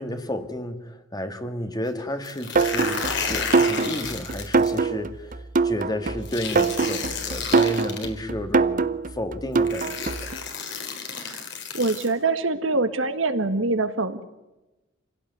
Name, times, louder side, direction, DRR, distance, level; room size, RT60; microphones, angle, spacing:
voice 1, 0.0-3.0 3.3-10.3, left 1 dB, 20° left, 8 dB, 1.9 m, -32 dB
sound 1, 2.2-4.8 6.3-8.1 9.1-9.2 9.6-12.1, left 5 dB, 60° left, 3.9 m, -32 dB
sound 2, 2.6-10.4, right 4 dB, 45° right, 0.8 m, -23 dB
voice 2, 11.7-14.2, right 3 dB, 75° right, 9 dB, 1.7 m, -24 dB
27.0 x 17.0 x 9.5 m, 1.0 s
head